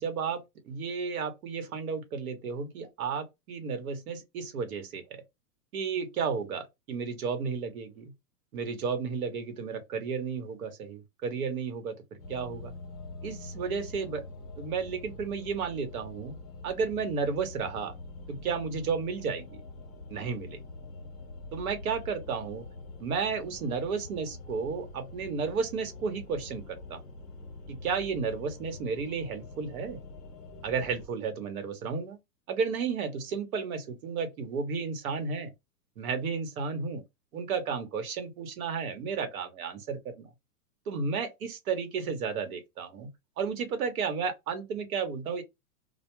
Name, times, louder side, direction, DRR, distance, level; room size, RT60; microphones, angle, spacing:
voice 1, 0.0-5.2 5.7-8.1 8.5-12.0 12.3-12.7 13.2-14.2 14.6-16.3 16.6-18.0 18.3-19.6 20.1-20.6 21.5-22.7 23.0-27.0 27.7-30.0 30.6-32.2 32.5-35.5 36.0-37.0 37.3-40.3 40.9-43.1 43.4-45.4, right 5 dB, 60° right, 1.1 m, -33 dB
sound 1, 12.2-31.1, left 2 dB, 30° left, 0.9 m, -45 dB
2.3 x 2.2 x 3.0 m
hypercardioid pair, 150°, 48 cm